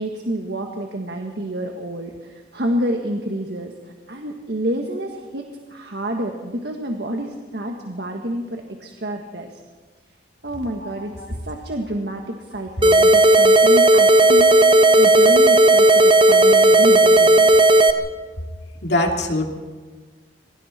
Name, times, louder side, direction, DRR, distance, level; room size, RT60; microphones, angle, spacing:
voice 1, 0.0-5.4 5.7-9.6 10.4-11.1 11.4-14.5 15.0-17.5, right 1 dB, 65° right, 2 dB, 1.7 m, -28 dB
sound 1, 12.8-17.9, right 2 dB, 30° right, 1.1 m, -13 dB
voice 2, 18.8-19.4, left 1 dB, 65° left, 1 dB, 2.9 m, -22 dB
26.5 x 22.5 x 4.4 m, 1.4 s
head